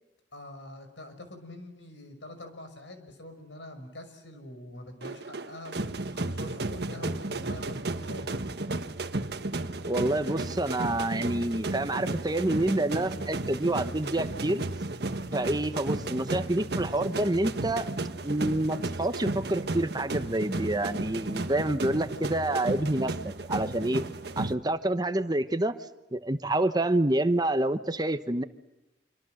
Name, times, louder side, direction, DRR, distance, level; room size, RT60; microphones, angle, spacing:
voice 1, 0.3-5.7 6.1-8.3, left 1 dB, 90° left, 7 dB, 5.8 m, -45 dB
sound 1, 5.0-24.6, right 2 dB, 60° right, 1.4 m, -33 dB
voice 2, 9.8-14.6 15.3-17.9 18.2-23.1 23.5-24.0 24.4-25.8 26.1-28.4, right 1 dB, 20° right, 10 dB, 1.1 m, -27 dB
27.0 x 25.0 x 7.8 m, 0.98 s
head